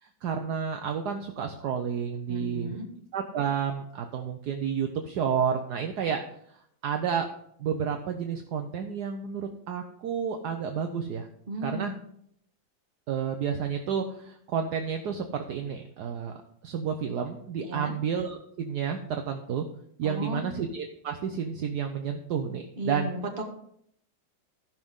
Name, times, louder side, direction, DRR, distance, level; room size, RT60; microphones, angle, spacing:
voice 1, 0.0-2.8 3.1-6.2 6.8-7.3 7.6-11.3 11.6-11.9 13.1-16.3 16.6-19.7 20.0-23.1, right 7 dB, 65° right, 5 dB, 1.2 m, -30 dB
voice 2, 2.3-2.9 11.5-11.9 17.6-17.9 20.0-20.4 22.8-23.4, right 1 dB, 30° right, 2 dB, 1.6 m, -34 dB
15.0 x 6.0 x 3.7 m, 0.70 s
omnidirectional pair, 2.1 m